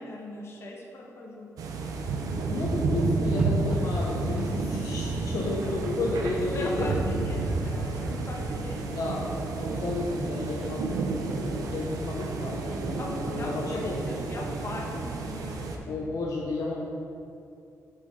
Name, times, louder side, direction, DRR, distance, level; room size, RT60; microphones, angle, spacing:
voice 1, 0.0-1.5 5.4-5.8 6.5-8.8 13.0-16.0, left 1 dB, 45° left, -2 dB, 1.5 m, -39 dB
sound 1, 1.6-15.8, right 3 dB, 80° right, 0.8 m, -30 dB
voice 2, 2.5-6.9 8.8-14.2 14.8-15.0 15.9-16.7, left 2 dB, 70° left, -4 dB, 1.0 m, -32 dB
Hammer, 3.4-4.7 6.9-8.2 10.6-11.9, right 1 dB, 25° right, 1.1 m, -50 dB
7.8 x 7.1 x 4.0 m, 2.5 s
cardioid pair, 95°, 6 cm